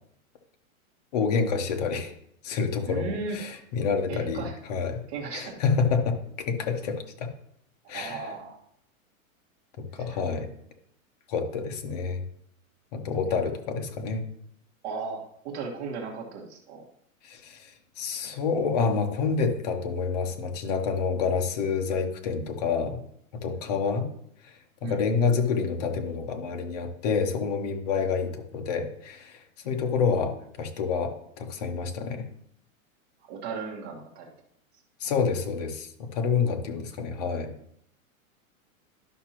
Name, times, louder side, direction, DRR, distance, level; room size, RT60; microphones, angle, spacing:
voice 1, 1.1-2.1 2.4-5.0 5.3-7.3 7.9-8.3 9.8-10.5 11.3-12.2 12.9-14.2 17.2-23.0 23.3-24.1 24.4-32.2 35.0-37.5, left 5 dB, 30° left, 4 dB, 0.8 m, -28 dB
voice 2, 2.9-3.4 4.1-4.5 5.1-5.6 7.9-8.6 10.0-10.1 14.8-16.8 24.8-25.0 33.3-34.3, right 4 dB, 50° right, -2 dB, 1.7 m, -36 dB
11.5 x 5.9 x 2.9 m, 0.70 s
supercardioid pair, 175°, 42 cm